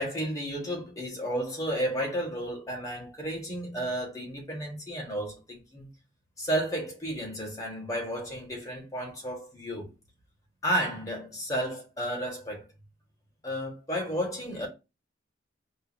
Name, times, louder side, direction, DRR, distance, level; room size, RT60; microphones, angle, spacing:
voice 1, 0.0-5.9 6.4-9.9 10.6-12.7 13.4-14.7, equal, 20° left, 1.2 m, -32 dB
4.5 x 2.0 x 3.4 m
head